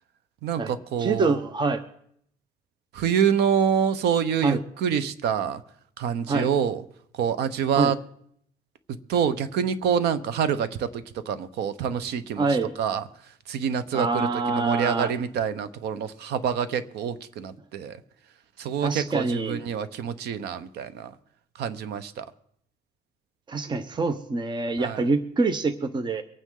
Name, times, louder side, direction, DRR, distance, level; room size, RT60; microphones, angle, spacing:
voice 1, 0.4-1.4 2.9-5.6 6.0-6.8 7.1-8.0 9.1-12.5 12.8-13.1 13.5-18.0 18.6-21.1 21.6-22.3 24.8-25.1, right 8 dB, 75° right, 13 dB, 1.0 m, -26 dB
voice 2, 1.0-1.8 4.4-4.6 6.3-6.5 7.8-7.9 12.4-12.7 13.9-15.1 18.8-19.6 23.5-26.2, right 3 dB, 25° right, 10 dB, 0.9 m, -25 dB
24.0 x 9.3 x 3.9 m, 0.69 s
cardioid pair, 110°, 17 cm